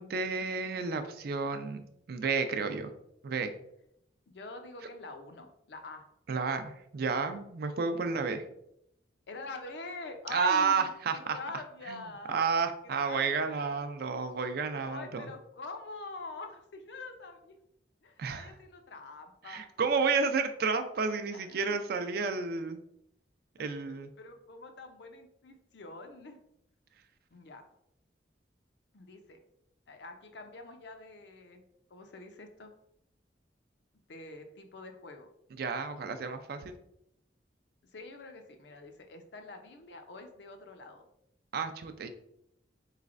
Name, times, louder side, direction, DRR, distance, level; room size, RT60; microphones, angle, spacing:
voice 1, 0.0-2.9 3.2-3.6 6.3-8.4 10.3-11.4 11.9-15.3 18.2-18.5 19.5-22.8 23.6-24.1 35.6-36.7 41.5-42.1, right 5 dB, 60° right, 8 dB, 0.4 m, -31 dB
voice 2, 4.3-6.1 7.9-8.3 9.3-12.6 13.0-13.9 14.4-17.6 18.0-19.7 21.3-21.8 23.6-26.4 27.3-27.7 28.9-29.4 29.9-31.6 31.9-32.7 34.1-35.3 37.9-41.0, left 3 dB, 75° left, 5 dB, 0.5 m, -46 dB
4.0 x 3.2 x 2.5 m, 0.76 s
head